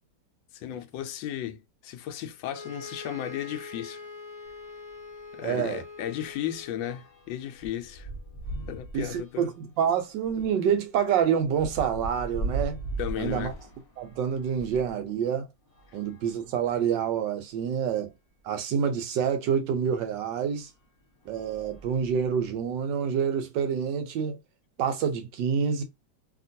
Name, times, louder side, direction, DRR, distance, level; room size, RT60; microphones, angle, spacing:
voice 1, 0.5-4.1 5.3-8.1 8.7-9.6 13.0-13.6 15.9-16.0, left 11 dB, 85° left, 1.3 m, -35 dB
sound 1, 2.5-6.9, left 4 dB, 15° right, 0.7 m, -43 dB
sound 2, 4.4-4.6 5.0-5.1 5.4-14.9 15.6-17.0 17.7-17.8 18.0-18.1 19.8-20.0 20.6-20.8 21.2-22.5, right 2 dB, 35° left, 1.3 m, -39 dB
voice 2, 5.4-5.8 8.9-12.8 13.2-13.5 14.0-15.5 15.9-18.1 18.4-20.7 21.3-24.4 24.8-25.8, right 7 dB, 80° right, 1.3 m, -27 dB
2.9 x 2.8 x 2.6 m
omnidirectional pair, 2.0 m